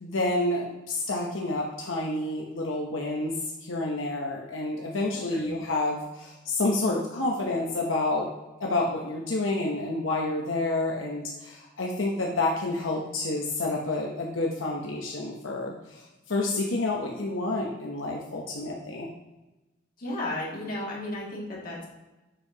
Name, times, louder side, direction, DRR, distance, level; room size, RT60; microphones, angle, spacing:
voice 1, 0.0-3.3 3.6-8.3 8.6-15.7 16.3-19.1, left 2 dB, 85° left, -1 dB, 0.9 m, -29 dB
voice 2, 5.1-5.5 20.0-21.9, left 1 dB, 45° left, -5 dB, 2.2 m, -34 dB
7.5 x 6.6 x 2.9 m, 1.0 s
head